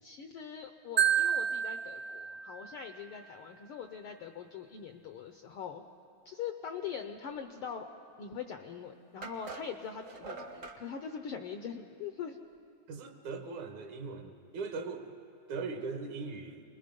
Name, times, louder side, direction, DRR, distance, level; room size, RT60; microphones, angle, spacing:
voice 1, 0.0-5.8 6.2-7.9 8.2-12.4, left 7 dB, 75° left, 6 dB, 1.3 m, -42 dB
Marimba xylophone, 1.0-3.0, right 9 dB, 60° right, 1.2 m, -30 dB
sound 1, 8.4-8.5 9.2-10.8, right 4 dB, 45° right, 0.8 m, -44 dB
voice 2, 12.9-15.1 15.5-16.6, right 4 dB, 80° right, 5 dB, 2.8 m, -39 dB
28.5 x 21.0 x 5.3 m, 2.7 s
omnidirectional pair, 3.4 m